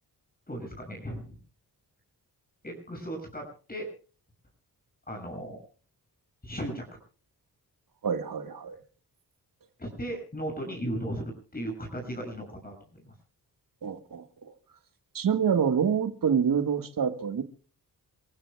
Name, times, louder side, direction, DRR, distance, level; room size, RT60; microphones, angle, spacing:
voice 1, 0.5-1.4 2.6-3.9 5.1-5.6 6.4-6.9 9.8-13.1, right 1 dB, 25° left, 6.8 m, -36 dB
voice 2, 8.0-8.8 13.8-14.5 15.1-17.4, right 7 dB, 60° right, 1.6 m, -27 dB
28.0 x 15.5 x 2.3 m
cardioid pair, 80°, 39 cm